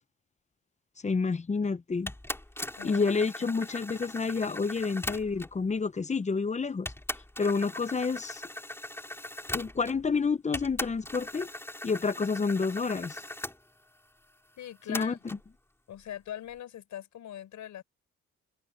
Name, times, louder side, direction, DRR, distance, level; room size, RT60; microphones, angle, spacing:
voice 1, 1.0-2.1 2.8-6.9 7.4-8.4 9.5-11.5 11.8-13.2 14.9-15.1, left 4 dB, 25° left, 0.8 m, -29 dB
sound 1, 2.1-5.6 6.4-6.5 6.9-10.1 10.5-13.6 14.9-15.4, left 1 dB, 10° left, 4.2 m, -39 dB
voice 2, 2.8-3.1 3.4-3.5 14.6-15.4 15.9-17.8, left 11 dB, 75° left, 4.8 m, -42 dB
cardioid pair, 90°, 30 cm